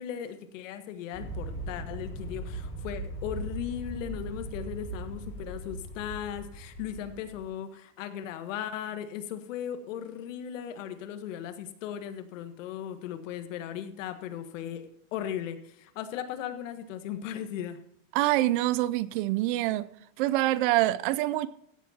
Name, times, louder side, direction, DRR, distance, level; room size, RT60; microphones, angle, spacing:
voice 1, 0.0-17.8, left 10 dB, 70° left, 1.6 m, -37 dB
Aircraft, 1.1-7.5, right 2 dB, 30° left, 5.5 m, -39 dB
voice 2, 18.1-19.9 20.2-21.5, right 16 dB, 45° right, 0.5 m, -25 dB
15.5 x 7.4 x 4.3 m
supercardioid pair, 160°, 39 cm